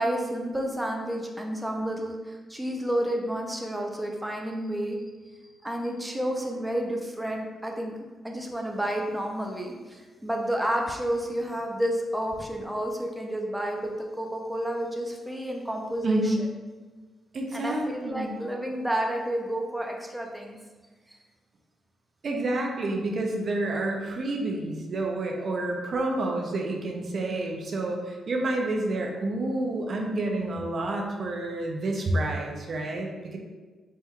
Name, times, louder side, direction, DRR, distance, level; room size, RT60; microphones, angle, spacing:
voice 1, 0.0-5.0 5.6-7.9 8.2-16.5 17.5-20.6 21.1-21.2, right 1 dB, 5° right, 1 dB, 0.5 m, -30 dB
voice 2, 16.0-16.4 17.3-18.4 22.2-33.4, right 2 dB, 55° right, 1 dB, 0.5 m, -29 dB
4.2 x 3.3 x 2.3 m, 1.3 s
cardioid pair, 75°, 0 cm